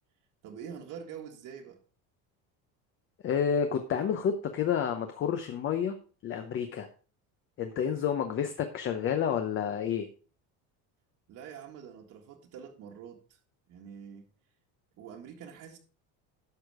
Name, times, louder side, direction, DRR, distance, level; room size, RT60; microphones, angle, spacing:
voice 1, 0.4-1.8 11.3-13.4 13.7-14.3 15.0-15.8, right 7 dB, 50° right, 1.9 m, -45 dB
voice 2, 3.2-6.0 6.2-6.9 7.6-10.1, left 8 dB, 30° left, 0.8 m, -29 dB
11.5 x 6.5 x 4.8 m
cardioid pair, 175°, 39 cm